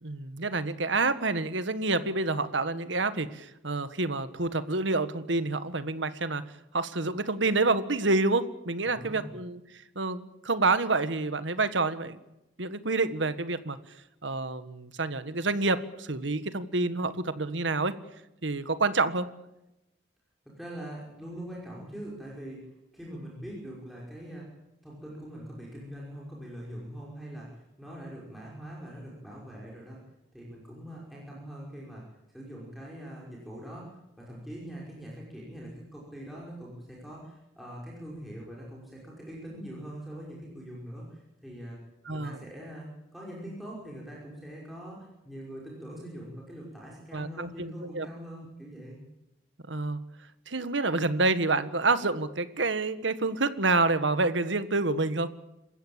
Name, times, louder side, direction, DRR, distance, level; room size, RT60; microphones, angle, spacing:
voice 1, 0.0-6.4 6.7-9.6 9.9-12.2 12.6-13.8 14.2-17.9 18.4-19.3 42.1-42.4 47.1-48.1 49.7-50.0 50.5-55.4, right 3 dB, 80° right, 12 dB, 1.6 m, -28 dB
voice 2, 8.8-9.3 20.6-30.0 30.3-32.1 32.3-41.8 42.1-42.9 43.1-49.0, equal, ahead, -5 dB, 5.5 m, -43 dB
28.0 x 15.0 x 8.8 m, 0.91 s
head